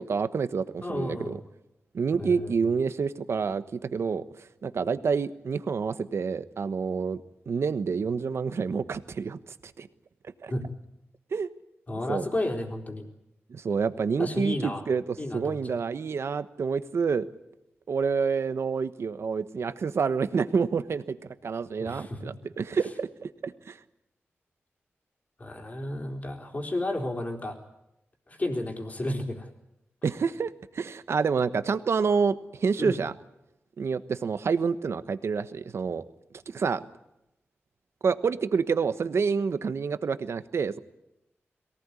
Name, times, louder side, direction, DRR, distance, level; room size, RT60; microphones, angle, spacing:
voice 1, 0.0-1.4 1.9-7.2 7.5-9.4 9.8-9.9 10.4-10.5 11.3-11.5 12.1-12.3 13.5-17.2 17.9-21.2 21.4-23.8 30.0-33.1 33.8-36.0 36.5-36.8 38.0-40.8, right 5 dB, 75° right, 12 dB, 1.2 m, -28 dB
voice 2, 0.8-1.4 2.2-2.5 10.5-10.7 11.9-13.1 14.2-14.8 15.2-15.7 21.8-22.2 25.4-27.6 28.3-29.5 32.8-33.0, left 1 dB, 35° left, 3 dB, 4.0 m, -32 dB
23.0 x 17.5 x 9.8 m, 0.88 s
wide cardioid pair, 100°, 5 cm